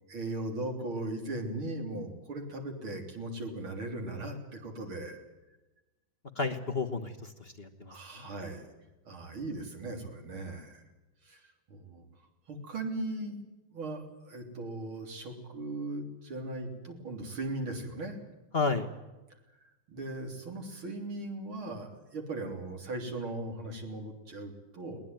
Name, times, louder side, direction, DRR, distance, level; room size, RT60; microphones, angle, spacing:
voice 1, 0.1-5.2 7.9-8.7 9.1-10.8 11.2-12.1 12.5-13.4 13.7-18.2 19.9-25.0, right 2 dB, 85° right, 3 dB, 4.3 m, -38 dB
voice 2, 6.3-8.3 18.5-18.9, left 4 dB, 35° left, 5 dB, 1.3 m, -32 dB
21.0 x 19.5 x 9.2 m, 1.1 s
omnidirectional pair, 2.2 m